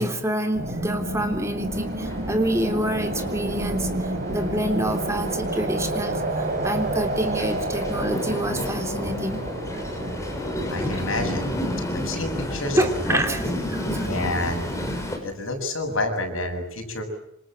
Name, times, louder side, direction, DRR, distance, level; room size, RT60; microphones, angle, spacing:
voice 1, 0.0-9.4 12.8-14.1, right 1 dB, 15° right, 5 dB, 3.4 m, -27 dB
sound 1, 0.5-11.1, right 1 dB, 45° right, 5.6 m, -29 dB
Train, 1.7-15.2, left 1 dB, 15° left, 6.2 m, -32 dB
voice 2, 10.7-11.5 11.9-12.9 14.1-14.6 15.2-17.0, left 2 dB, 80° left, 4 dB, 7.4 m, -28 dB
27.0 x 27.0 x 7.7 m, 0.75 s
head